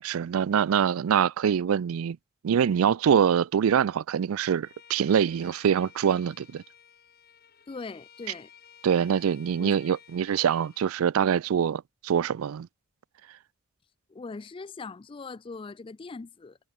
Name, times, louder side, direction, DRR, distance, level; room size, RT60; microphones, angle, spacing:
voice 1, 0.0-2.2 2.4-6.6 8.8-12.7, right 8 dB, 90° right, 0.4 m, -24 dB
Bowed string instrument, 4.6-10.9, left 8 dB, 50° left, 6.8 m, -54 dB
voice 2, 7.7-8.5 9.6-10.0 14.1-16.6, left 4 dB, 25° left, 0.3 m, -41 dB
head